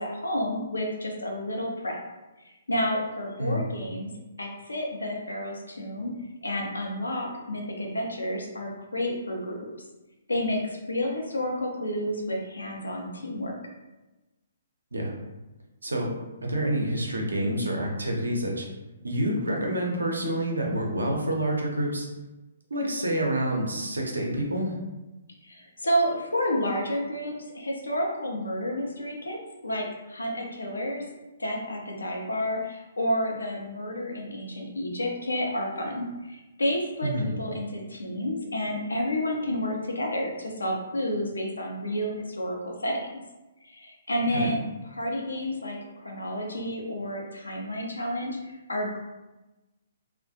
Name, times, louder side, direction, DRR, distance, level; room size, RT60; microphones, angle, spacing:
voice 1, 0.0-2.0 2.4-4.1 4.4-6.1 6.4-9.7 10.3-13.5 25.4-29.4 29.6-31.0 31.4-37.1 37.4-43.1 43.6-44.6 45.0-49.0, equal, 70° left, 0 dB, 0.5 m, -30 dB
voice 2, 16.4-18.7 19.0-22.1 22.7-24.7 37.0-37.3 44.3-44.5, right 1 dB, 70° right, 0 dB, 0.5 m, -28 dB
2.3 x 2.1 x 2.6 m, 1.1 s
figure-of-eight pair, 125°, 0 cm